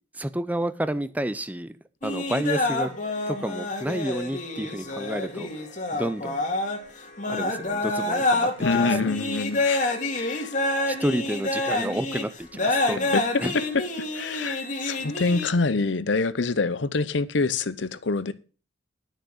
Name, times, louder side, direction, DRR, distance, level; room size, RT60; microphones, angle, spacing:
voice 1, 0.1-1.8 2.0-2.9 3.3-5.5 5.9-6.4 7.3-9.1 10.9-13.5, right 1 dB, 10° right, 0.6 m, -30 dB
sound 1, 2.0-15.5, left 2 dB, 45° left, 2.1 m, -27 dB
voice 2, 8.6-10.5 13.1-13.6 14.1-18.3, left 3 dB, 80° left, 0.8 m, -26 dB
11.0 x 6.5 x 6.3 m
head